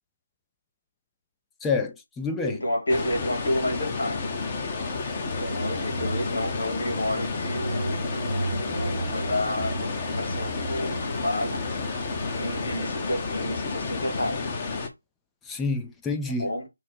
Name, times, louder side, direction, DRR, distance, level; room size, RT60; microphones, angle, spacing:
voice 1, 1.6-2.6 15.5-16.5, left 4 dB, 5° left, 0.4 m, -28 dB
voice 2, 2.4-4.2 5.2-11.6 12.3-14.4 16.4-16.7, left 1 dB, 70° left, 2.5 m, -30 dB
sound 1, 2.9-14.9, left 4 dB, 25° left, 0.8 m, -31 dB
sound 2, 4.9-12.8, right 3 dB, 65° right, 1.0 m, -36 dB
5.7 x 2.1 x 4.3 m
figure-of-eight pair, 160°, 0 cm